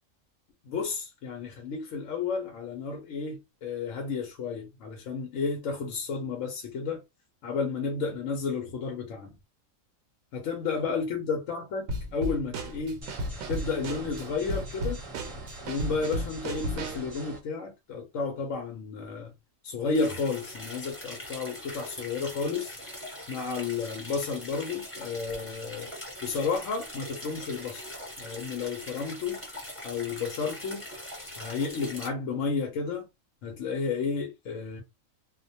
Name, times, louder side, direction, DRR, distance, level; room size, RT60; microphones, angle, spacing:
voice 1, 0.6-7.0 7.4-9.3 10.3-13.0 13.5-15.0 15.7-19.3 19.6-22.7 23.3-25.9 26.2-27.8 28.2-29.4 29.8-30.8 31.4-33.1 33.4-34.8, left 5 dB, 75° left, 1.0 m, -32 dB
Drum kit / Snare drum, 11.9-17.1, right 1 dB, 85° right, 1.0 m, -34 dB
sound 1, 13.0-17.4, right 2 dB, 30° right, 0.7 m, -44 dB
sound 2, 19.9-32.1, left 1 dB, 10° left, 0.8 m, -42 dB
2.4 x 2.1 x 2.7 m
omnidirectional pair, 1.4 m